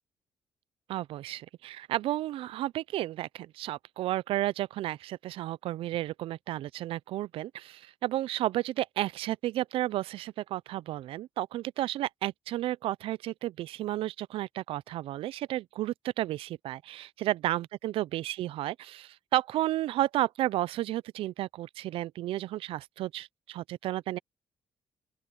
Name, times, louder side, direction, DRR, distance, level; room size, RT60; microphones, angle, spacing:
voice 1, 0.9-24.2, right 14 dB, 75° right, 0.5 m, -32 dB
open air
supercardioid pair, 60°, 9 cm